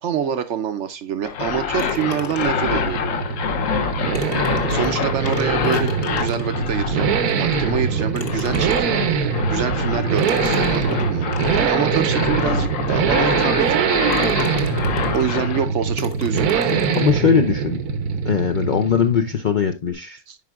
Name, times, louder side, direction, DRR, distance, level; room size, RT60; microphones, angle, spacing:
voice 1, 0.0-3.0 4.7-11.3 11.6-14.5 15.1-16.7 20.3-20.4, right 8 dB, 65° right, 0.7 m, -26 dB
sound 1, 1.2-15.7, left 6 dB, 60° left, 1.2 m, -27 dB
sound 2, 1.7-19.5, right 6 dB, 85° right, 1.4 m, -23 dB
sound 3, 1.8-2.8 3.8-6.7 7.3-7.4 8.1-9.1 10.2-11.7 12.4-12.5 13.0-13.1 13.6-13.8 14.1-15.4 16.0-17.1, left 5 dB, 45° left, 1.1 m, -36 dB
voice 2, 16.7-17.8 18.2-20.2, left 7 dB, 80° left, 0.4 m, -20 dB
10.5 x 4.9 x 2.3 m
omnidirectional pair, 1.6 m